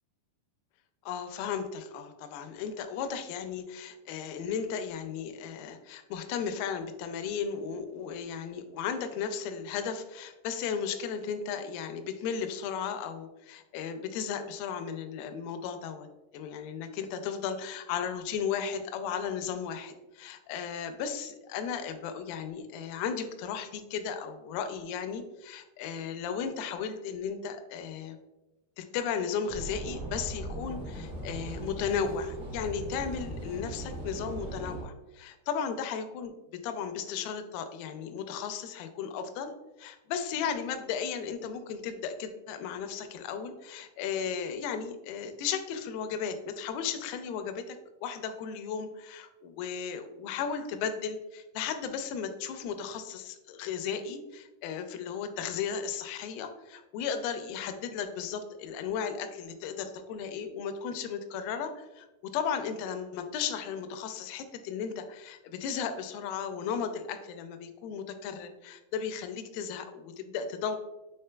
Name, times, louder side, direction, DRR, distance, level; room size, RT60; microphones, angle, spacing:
voice 1, 1.1-16.1 16.3-28.2 28.8-36.3 36.6-39.5 39.8-70.8, left 7 dB, 80° left, 7 dB, 2.2 m, -35 dB
sound 1, 29.5-34.8, right 1 dB, 60° right, 1.5 m, -39 dB
6.4 x 3.7 x 2.2 m, 1.0 s
omnidirectional pair, 4.4 m